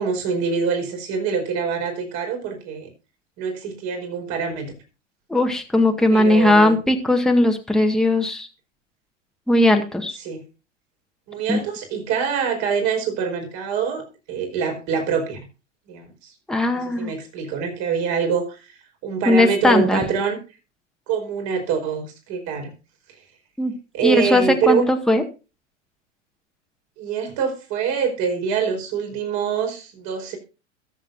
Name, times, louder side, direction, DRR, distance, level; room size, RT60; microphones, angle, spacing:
voice 1, 0.0-2.9 3.4-4.7 6.1-6.8 10.2-10.4 11.3-15.4 15.9-16.3 16.7-18.7 19.0-20.4 21.1-22.7 23.9-24.8 27.0-30.4, right 6 dB, 45° right, 4 dB, 5.0 m, -25 dB
voice 2, 5.3-8.5 9.5-10.2 11.5-11.6 16.5-17.1 19.3-20.0 23.6-23.7 24.0-25.2, left 1 dB, ahead, 3 dB, 1.9 m, -18 dB
21.5 x 7.3 x 2.7 m, 0.31 s
hypercardioid pair, 95°, 38 cm